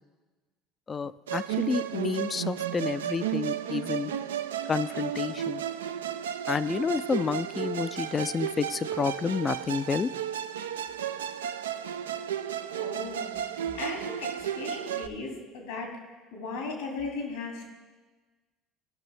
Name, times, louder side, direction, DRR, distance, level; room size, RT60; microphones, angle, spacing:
voice 1, 0.9-4.1 4.7-5.6 6.5-10.1 13.7-13.8, left 5 dB, 30° left, 16 dB, 0.4 m, -30 dB
Musical instrument, 1.3-15.1, right 10 dB, 85° right, 0.3 m, -33 dB
voice 2, 12.7-15.9 16.3-17.6, left 3 dB, 75° left, 0 dB, 2.5 m, -37 dB
16.0 x 6.0 x 3.4 m, 1.3 s
hypercardioid pair, 65°, 0 cm